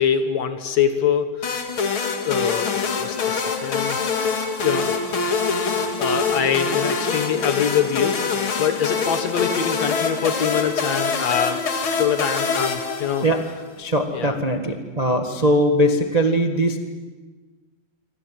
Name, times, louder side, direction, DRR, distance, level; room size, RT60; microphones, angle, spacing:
voice 1, 0.0-1.5 2.2-4.0 4.6-4.9 5.7-11.6 12.0-13.3 14.1-14.4, left 8 dB, 60° left, 8 dB, 2.3 m, -24 dB
sound 1, 1.4-13.6, left 5 dB, 45° left, 2.4 m, -24 dB
voice 2, 13.8-16.8, equal, 40° right, 4 dB, 0.5 m, -20 dB
27.5 x 24.5 x 7.6 m, 1.3 s
omnidirectional pair, 4.0 m